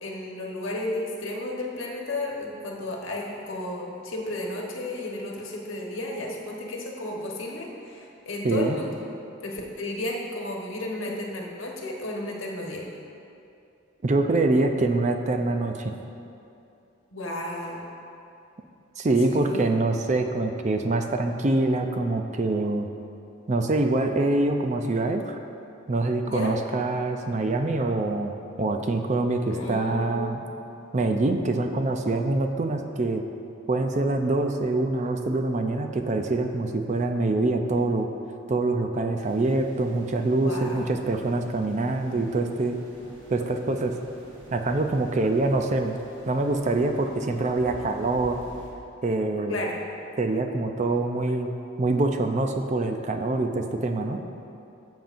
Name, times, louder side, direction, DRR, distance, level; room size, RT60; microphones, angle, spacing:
voice 1, 0.0-9.0 9.4-12.9 17.1-17.9 19.3-19.6 26.3-26.6 29.4-30.4 40.4-41.0 49.5-49.8, left 1 dB, 75° left, -1 dB, 1.2 m, -33 dB
voice 2, 8.4-8.8 14.0-15.9 19.0-22.9 23.5-25.4 25.9-30.4 30.9-33.2 33.7-38.1 38.5-42.8 43.3-43.9 44.5-46.0 46.3-48.4 49.0-49.6 50.2-51.5 51.8-54.2, right 2 dB, 35° right, 5 dB, 0.5 m, -25 dB
sound 1, 39.2-48.7, equal, 75° right, 2.1 m, -50 dB
13.5 x 7.2 x 2.6 m, 2.6 s
head